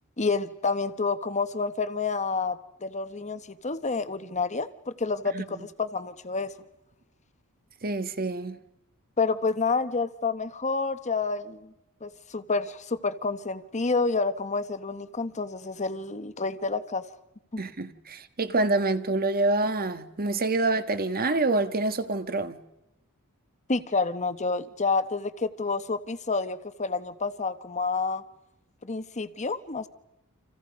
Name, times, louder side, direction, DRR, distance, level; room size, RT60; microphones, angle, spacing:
voice 1, 0.2-6.5 9.2-11.7 12.0-17.0 17.5-17.6 23.7-28.2 28.8-29.9, left 4 dB, 30° left, 1.1 m, -29 dB
voice 2, 7.8-8.6 17.6-22.6, right 2 dB, 45° right, 1.6 m, -26 dB
29.5 x 27.5 x 5.3 m
head